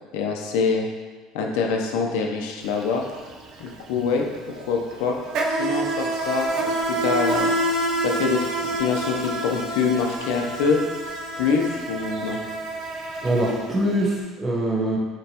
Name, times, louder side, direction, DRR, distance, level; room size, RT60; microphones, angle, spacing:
voice 1, 0.1-0.9 1.3-3.0 3.6-4.2 4.6-5.2 5.5-7.5 8.0-10.8 11.4-12.4, left 5 dB, 80° left, 1 dB, 0.6 m, -25 dB
Insect, 2.6-2.8 3.1-14.1, right 1 dB, 60° right, 0.6 m, -27 dB
voice 2, 13.2-15.0, right 1 dB, 25° right, -1 dB, 0.9 m, -23 dB
5.3 x 3.0 x 2.9 m, 1.4 s
supercardioid pair, 105°, 0 cm